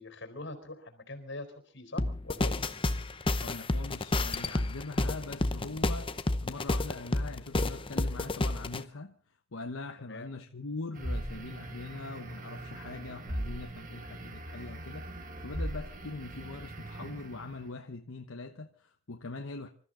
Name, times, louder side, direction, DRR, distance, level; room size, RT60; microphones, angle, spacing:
voice 1, 0.0-2.6 10.0-10.3, left 2 dB, 60° left, 4.3 m, -43 dB
sound 1, 2.0-8.8, left 2 dB, 25° left, 0.8 m, -30 dB
voice 2, 3.4-9.1 9.5-19.7, left 3 dB, 85° left, 1.1 m, -42 dB
sound 2, 10.9-17.7, right 1 dB, 40° right, 2.0 m, -40 dB
26.5 x 14.0 x 3.8 m
head